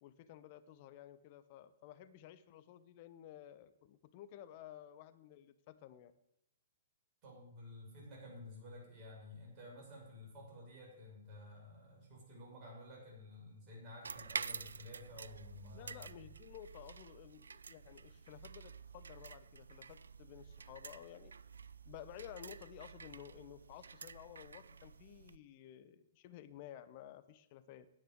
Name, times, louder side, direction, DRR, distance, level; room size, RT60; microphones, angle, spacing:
voice 1, 0.0-6.1 15.7-21.3 21.8-28.0, left 11 dB, 40° left, 13 dB, 0.8 m, -54 dB
voice 2, 7.2-16.0, left 1 dB, 35° right, -3 dB, 5.9 m, -53 dB
sound 1, 14.0-25.4, right 5 dB, 70° right, 0.4 m, -49 dB
10.0 x 8.9 x 7.8 m, 0.84 s
figure-of-eight pair, 115°, 0 cm